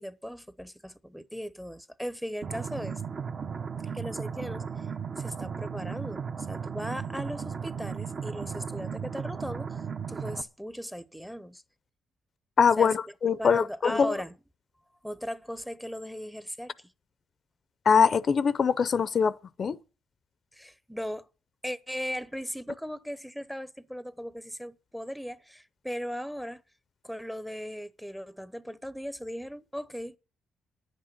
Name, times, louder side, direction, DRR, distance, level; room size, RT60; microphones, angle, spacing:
voice 1, 0.0-3.0 3.9-4.9 5.2-6.2 6.5-11.6 12.8-12.9 13.4-14.3 15.0-16.9 20.5-21.3 21.6-26.6 27.0-30.2, equal, ahead, 0.8 m, -38 dB
sound 1, 2.4-10.4, right 6 dB, 45° right, 0.9 m, -35 dB
voice 2, 12.6-14.1 17.9-19.3 19.6-19.8, left 6 dB, 45° left, 0.6 m, -23 dB
10.0 x 8.3 x 8.0 m
cardioid pair, 90°, 0 cm